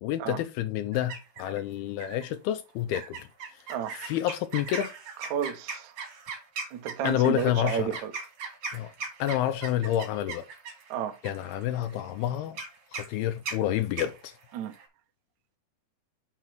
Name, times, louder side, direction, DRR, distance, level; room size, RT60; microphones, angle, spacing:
voice 1, 0.0-3.2 4.0-4.9 7.0-7.9 8.7-8.9 9.2-10.5 11.2-12.6 12.9-14.3, left 12 dB, 85° left, 2.4 m, -29 dB
sound 1, 0.9-1.6 2.0-2.3 2.9-14.9, right 4 dB, 45° right, 3.2 m, -39 dB
voice 2, 5.2-5.9 6.7-8.1 10.9-11.2 14.5-14.7, right 9 dB, 70° right, 1.8 m, -32 dB
6.4 x 6.1 x 4.5 m
omnidirectional pair, 4.6 m